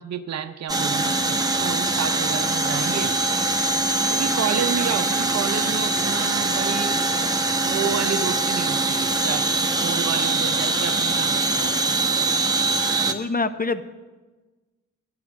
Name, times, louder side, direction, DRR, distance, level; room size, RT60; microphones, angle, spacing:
voice 1, 0.0-3.2 4.1-7.3 7.6-11.9, right 8 dB, 50° right, 9 dB, 0.7 m, -30 dB
sound 1, 0.7-13.1, right 3 dB, 10° right, 1.0 m, -23 dB
voice 2, 13.1-13.8, left 3 dB, 25° left, 12 dB, 0.7 m, -25 dB
9.2 x 7.9 x 7.0 m, 1.2 s
supercardioid pair, 40°, 34 cm